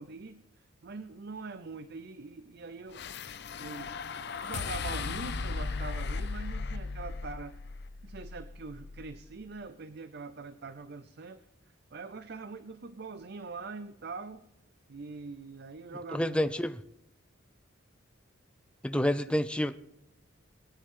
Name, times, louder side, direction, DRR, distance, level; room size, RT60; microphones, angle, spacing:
voice 1, 0.0-3.1 3.6-4.0 4.4-7.6 8.0-11.5 11.9-14.4 14.9-16.6 18.9-19.3, right 4 dB, 50° right, 0.6 m, -43 dB
sound 1, 2.9-9.3, left 4 dB, 50° left, 0.6 m, -37 dB
voice 2, 16.1-16.8 18.8-19.8, equal, 5° left, 0.5 m, -28 dB
21.0 x 10.0 x 3.7 m
head